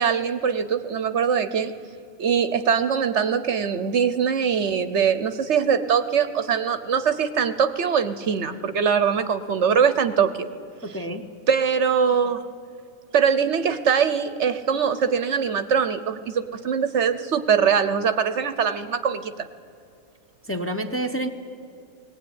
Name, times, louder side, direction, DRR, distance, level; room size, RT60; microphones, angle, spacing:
voice 1, 0.0-1.7 2.2-10.5 11.5-12.4 13.1-19.5, right 7 dB, 60° right, 11 dB, 1.0 m, -22 dB
voice 2, 10.8-11.3 20.5-21.3, right 1 dB, 10° left, 3 dB, 0.9 m, -28 dB
20.0 x 17.0 x 9.6 m, 2.6 s
omnidirectional pair, 1.4 m